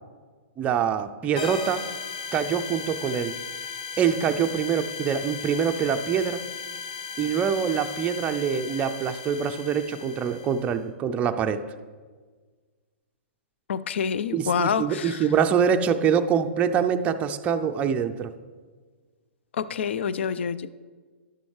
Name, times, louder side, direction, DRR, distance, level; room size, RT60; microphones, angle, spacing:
voice 1, 0.6-1.9 2.3-3.3 4.0-6.4 7.2-11.6 14.3-18.3, right 7 dB, 20° right, 7 dB, 0.4 m, -25 dB
sound 1, 1.4-10.7, left 6 dB, 40° left, 1.0 m, -37 dB
voice 2, 13.7-15.3 19.5-20.7, left 7 dB, 65° left, 16 dB, 0.4 m, -27 dB
11.0 x 7.0 x 3.2 m, 1.5 s
hypercardioid pair, 130°, 7 cm